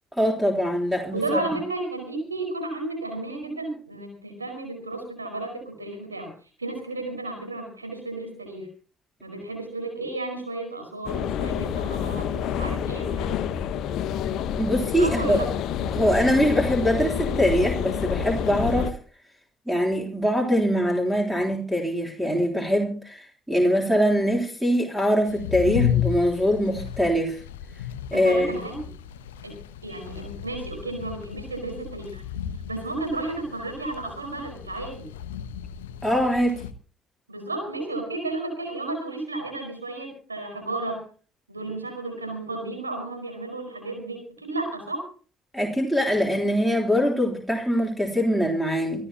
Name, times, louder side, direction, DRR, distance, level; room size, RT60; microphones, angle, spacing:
voice 1, 0.1-1.4 14.6-15.4 15.9-18.9 19.7-27.4 28.1-28.6 36.0-36.6 45.5-49.1, equal, 5° right, 1 dB, 3.5 m, -23 dB
voice 2, 1.1-6.3 6.6-8.7 9.2-13.4 15.0-15.5 28.1-28.8 29.4-29.5 29.8-32.2 32.7-35.1 37.3-41.0 41.5-45.1, right 2 dB, 85° right, 4 dB, 4.8 m, -33 dB
sound 1, 11.0-18.9, left 8 dB, 55° left, 1.1 m, -28 dB
sound 2, 25.2-36.7, left 10 dB, 75° left, 0.9 m, -33 dB
26.5 x 12.5 x 2.9 m, 0.40 s
figure-of-eight pair, 50°, 0 cm